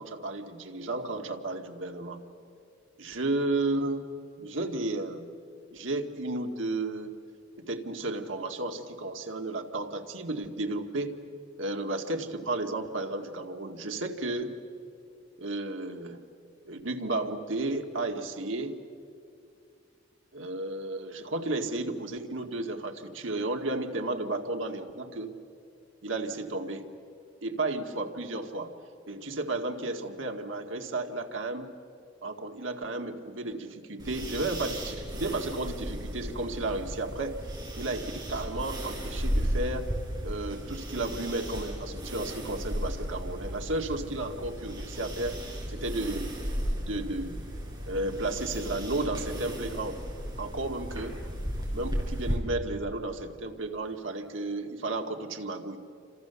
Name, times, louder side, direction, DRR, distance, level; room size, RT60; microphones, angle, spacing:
voice 1, 0.0-2.2 3.0-4.1 4.4-5.4 5.7-7.2 7.6-11.2 11.6-14.6 15.4-16.2 16.7-18.8 20.3-25.3 26.0-26.9 27.4-28.7 29.1-31.7 32.2-37.4 37.8-39.9 40.2-46.3 46.8-47.4 47.9-50.0 50.4-51.3 51.7-55.8, right 2 dB, 85° right, 4 dB, 2.1 m, -33 dB
sound 1, 34.0-52.4, equal, 20° right, 4.8 m, -35 dB
29.5 x 26.5 x 7.0 m, 2.4 s
head